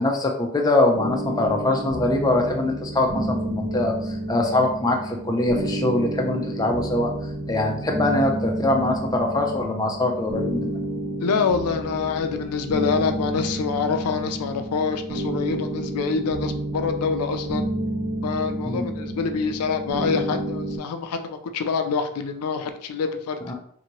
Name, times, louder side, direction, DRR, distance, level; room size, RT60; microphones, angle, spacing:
voice 1, 0.0-10.8 18.6-18.8 23.5-23.6, left 2 dB, 15° left, 2 dB, 0.4 m, -23 dB
sound 1, 0.9-20.8, right 1 dB, 40° right, 0.8 m, -30 dB
voice 2, 11.2-17.7 18.2-23.4, left 5 dB, 85° left, 7 dB, 0.4 m, -26 dB
2.8 x 2.6 x 2.9 m, 0.65 s
head